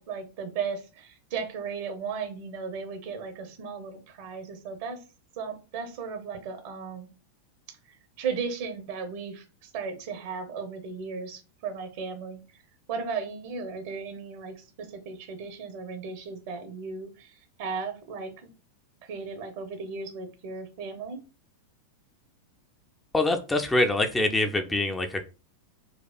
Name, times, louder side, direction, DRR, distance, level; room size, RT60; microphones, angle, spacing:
voice 1, 0.0-5.0 5.4-7.1 7.9-12.4 12.9-18.5 19.0-21.2, right 5 dB, 50° right, 6 dB, 0.6 m, -36 dB
voice 2, 23.1-25.2, left 2 dB, 10° left, 6 dB, 0.4 m, -24 dB
4.2 x 2.3 x 2.2 m, 0.32 s
figure-of-eight pair, 90°, 0 cm